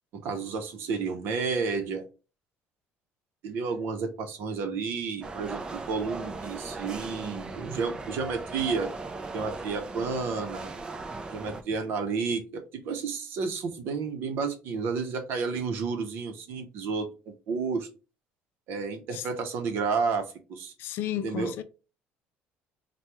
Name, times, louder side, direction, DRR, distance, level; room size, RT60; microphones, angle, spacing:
voice 1, 0.1-2.0 3.4-8.9 9.3-10.7 11.3-17.9 18.7-20.7 21.2-21.5, right 5 dB, 65° right, 0.7 m, -31 dB
sound 1, 5.2-11.6, right 3 dB, 20° right, 0.4 m, -38 dB
voice 2, 20.8-21.6, left 11 dB, 65° left, 0.4 m, -33 dB
3.3 x 2.2 x 2.9 m
cardioid pair, 135°, 4 cm